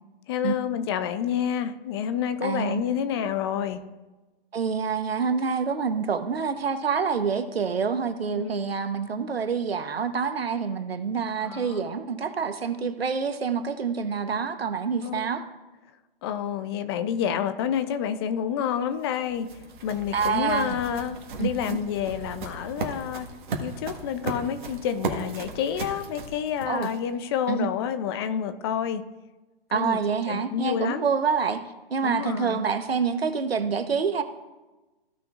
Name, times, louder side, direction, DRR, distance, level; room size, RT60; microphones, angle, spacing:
voice 1, 0.3-3.8 8.4-8.7 11.4-11.8 15.0-15.3 16.2-19.5 19.8-23.3 23.6-29.1 29.7-31.0 32.0-32.6, left 8 dB, 25° left, 11 dB, 0.5 m, -29 dB
voice 2, 2.4-2.8 4.5-15.4 20.1-20.8 21.4-21.8 26.7-26.9 27.5-27.7 29.7-31.6 31.9-34.2, right 6 dB, 85° right, 9 dB, 1.1 m, -27 dB
sound 1, 18.7-27.2, right 4 dB, 55° right, 1.6 m, -36 dB
15.5 x 5.8 x 2.5 m, 1.1 s
hypercardioid pair, 135°, 30 cm